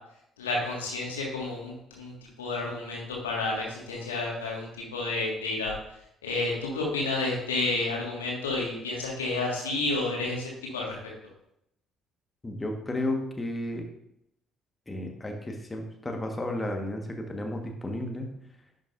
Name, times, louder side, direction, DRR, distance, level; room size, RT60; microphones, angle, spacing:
voice 1, 0.4-2.1 2.4-5.7 6.2-11.0, left 2 dB, 80° left, -2 dB, 1.9 m, -30 dB
voice 2, 12.4-13.9 14.9-18.3, left 1 dB, 20° left, 3 dB, 1.5 m, -33 dB
10.5 x 6.1 x 2.6 m, 0.77 s
figure-of-eight pair, 50°, 0 cm